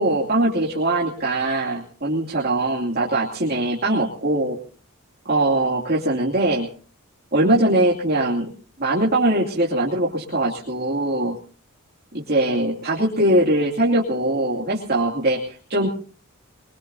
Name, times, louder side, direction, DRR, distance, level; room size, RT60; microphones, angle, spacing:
voice 1, 0.0-4.6 5.2-6.7 7.3-8.5 8.8-11.3 12.1-15.9, right 1 dB, 45° right, -4 dB, 2.7 m, -21 dB
23.5 x 22.0 x 2.8 m, 0.42 s
head